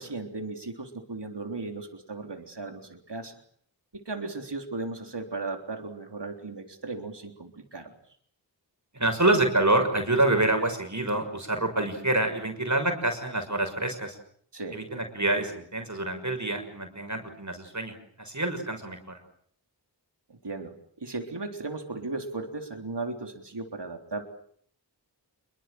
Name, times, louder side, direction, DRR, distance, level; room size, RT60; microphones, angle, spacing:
voice 1, 0.0-3.4 3.9-7.9 14.5-14.8 20.3-24.2, right 3 dB, 65° right, 4 dB, 3.6 m, -36 dB
voice 2, 8.9-14.2 14.7-19.2, right 2 dB, 40° right, 5 dB, 6.1 m, -27 dB
27.0 x 23.0 x 7.7 m, 0.62 s
wide cardioid pair, 45°, 45 cm